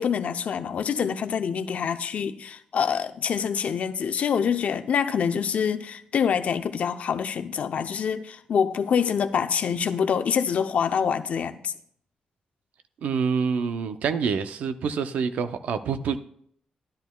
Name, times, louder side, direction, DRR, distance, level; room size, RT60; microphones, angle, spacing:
voice 1, 0.0-11.7, left 7 dB, 70° left, 0.6 m, -26 dB
voice 2, 13.0-16.2, right 6 dB, 90° right, 0.5 m, -27 dB
13.0 x 10.5 x 2.3 m
cardioid pair, 90°, 2 cm